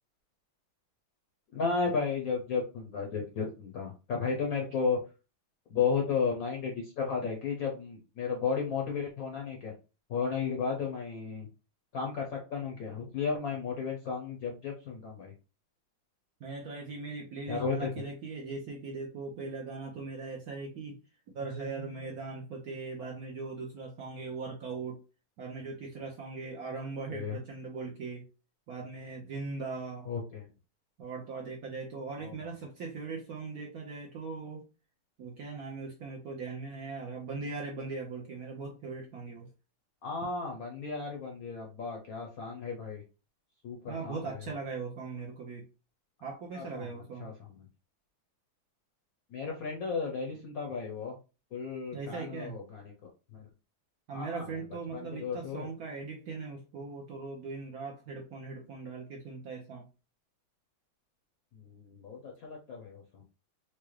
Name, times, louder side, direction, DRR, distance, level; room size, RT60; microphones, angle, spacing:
voice 1, 1.5-5.0 5.7-9.7 10.1-11.5 11.9-15.3 17.5-17.9 27.1-27.4 30.1-30.5 32.2-32.3 40.0-43.0 43.6-44.4 46.5-47.5 49.3-51.2 51.5-53.5 54.1-54.5 54.9-55.7 61.5-63.2, left 5 dB, 65° left, 0 dB, 0.9 m, -34 dB
voice 2, 16.4-21.0 21.3-25.0 25.4-28.2 28.7-30.1 31.0-34.6 35.2-39.5 43.9-45.6 46.2-47.3 51.9-52.6 54.1-59.9, right 4 dB, 65° right, 0 dB, 0.9 m, -39 dB
4.6 x 2.2 x 3.0 m, 0.31 s
omnidirectional pair, 2.2 m